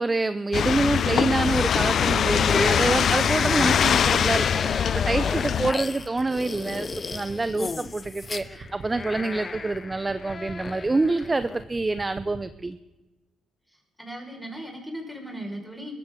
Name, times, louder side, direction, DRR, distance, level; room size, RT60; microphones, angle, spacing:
voice 1, 0.0-12.8, right 3 dB, 20° right, 12 dB, 0.6 m, -26 dB
sound 1, 0.5-5.7, left 8 dB, 60° left, 0.4 m, -22 dB
sound 2, 2.5-11.6, left 4 dB, 30° left, 0.7 m, -33 dB
sound 3, 4.1-12.5, right 4 dB, 45° right, 2.3 m, -43 dB
voice 2, 14.0-15.9, right 1 dB, ahead, 0 dB, 5.0 m, -37 dB
22.0 x 13.5 x 3.7 m, 1.1 s
cardioid pair, 90°, 0 cm